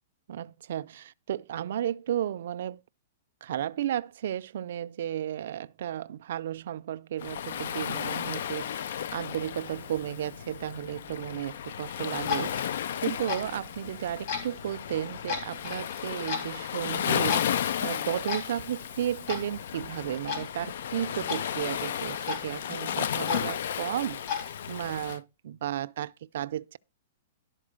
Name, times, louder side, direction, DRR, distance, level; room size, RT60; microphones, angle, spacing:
voice 1, 0.3-2.8 3.4-12.7 13.0-17.5 17.8-26.8, right 11 dB, 65° right, 0.4 m, -34 dB
Waves surf, 7.2-25.2, left 9 dB, 65° left, 0.4 m, -34 dB
Clock, 11.9-24.5, left 7 dB, 45° left, 3.4 m, -39 dB
12.0 x 4.4 x 6.3 m
hypercardioid pair, 155°, 0 cm